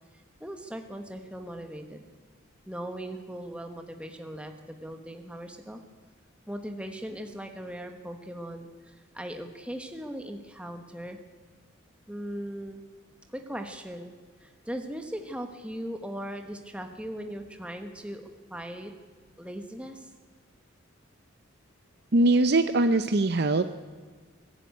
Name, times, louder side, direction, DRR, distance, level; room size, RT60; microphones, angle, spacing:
voice 1, 0.1-2.0 2.7-5.8 6.5-11.2 12.1-12.8 13.3-14.1 14.4-18.2 18.5-18.9 19.4-20.1, equal, 5° right, 5 dB, 1.2 m, -39 dB
voice 2, 22.1-23.7, right 2 dB, 50° right, 9 dB, 0.7 m, -22 dB
22.5 x 13.0 x 9.5 m, 1.5 s
head